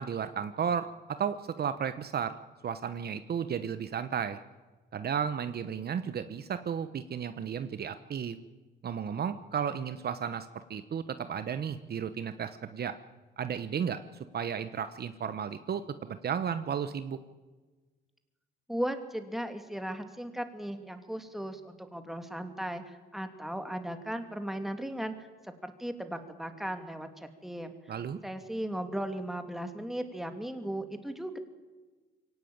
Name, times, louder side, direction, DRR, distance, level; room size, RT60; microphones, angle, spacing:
voice 1, 0.0-2.4 2.6-4.4 4.9-8.4 8.8-13.0 13.4-14.0 14.3-17.2 27.9-28.2, right 7 dB, 55° right, 11 dB, 1.1 m, -33 dB
voice 2, 18.7-27.8 28.2-31.4, right 1 dB, ahead, 7 dB, 2.6 m, -37 dB
23.0 x 17.5 x 8.9 m, 1.3 s
cardioid pair, 90°, 20 cm